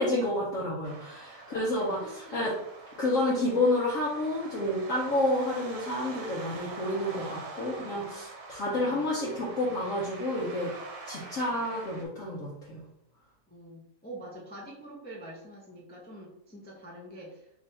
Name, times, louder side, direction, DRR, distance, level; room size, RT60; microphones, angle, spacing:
voice 1, 0.0-2.5 3.0-10.7 11.0-12.8, left 1 dB, 55° left, -6 dB, 1.2 m, -29 dB
sound 1, 0.8-12.0, right 3 dB, 85° right, 1.4 m, -45 dB
voice 2, 1.5-2.5 7.6-8.1 8.6-9.1 11.5-11.6 13.5-17.5, right 1 dB, 15° left, -3 dB, 0.4 m, -46 dB
3.6 x 3.1 x 4.3 m, 0.78 s
omnidirectional pair, 1.8 m